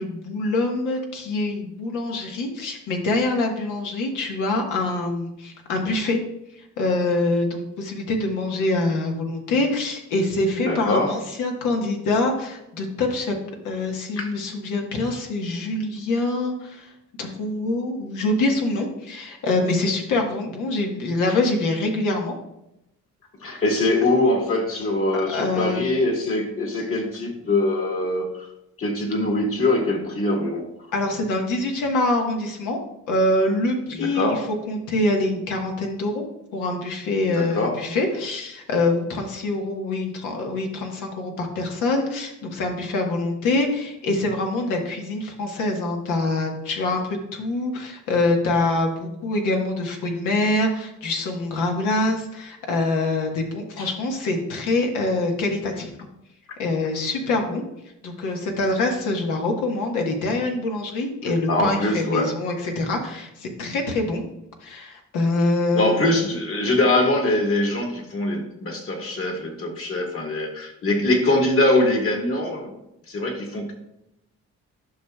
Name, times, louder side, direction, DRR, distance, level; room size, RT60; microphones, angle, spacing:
voice 1, 0.0-6.2 6.6-13.3 13.6-16.9 17.2-22.3 23.5-23.6 25.1-26.0 30.9-32.8 33.1-34.4 34.7-36.3 36.5-55.9 56.6-57.6 58.0-64.2 64.6-66.0, left 2 dB, 90° left, 2 dB, 1.3 m, -25 dB
voice 2, 10.6-11.2 14.2-14.3 23.4-28.5 28.8-30.7 34.0-34.4 37.3-37.8 53.8-53.9 61.5-62.3 65.7-72.7 73.1-73.7, left 2 dB, 45° left, 1 dB, 1.7 m, -23 dB
11.0 x 5.8 x 2.3 m, 0.85 s
cardioid pair, 90°, 30 cm